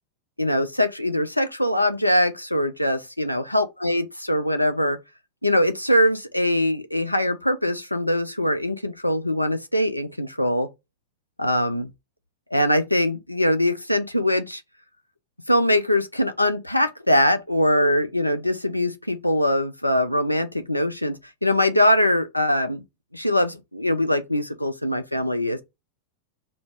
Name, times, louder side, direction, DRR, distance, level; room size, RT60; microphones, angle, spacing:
voice 1, 0.4-5.0 5.4-10.7 11.4-11.9 12.5-14.6 15.5-21.2 21.4-22.8 23.1-25.6, left 1 dB, 85° left, 0.5 m, -22 dB
4.0 x 2.0 x 3.3 m
figure-of-eight pair, 90°, 0 cm